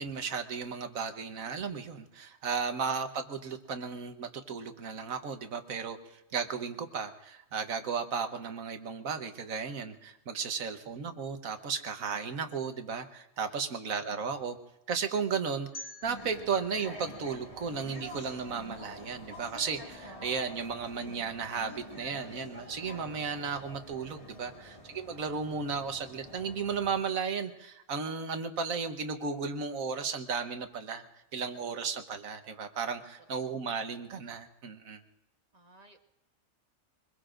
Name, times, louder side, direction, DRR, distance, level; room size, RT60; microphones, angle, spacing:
voice 1, 0.0-14.6 14.9-31.0 31.3-35.0, right 5 dB, 90° right, 7 dB, 1.5 m, -35 dB
sound 1, 15.7-18.7, left 1 dB, 55° left, 2.3 m, -50 dB
sound 2, 16.0-27.0, equal, 25° left, 1.8 m, -47 dB
voice 2, 35.5-36.0, right 2 dB, 30° right, 4 dB, 1.2 m, -59 dB
24.5 x 21.0 x 2.5 m, 0.91 s
omnidirectional pair, 1.4 m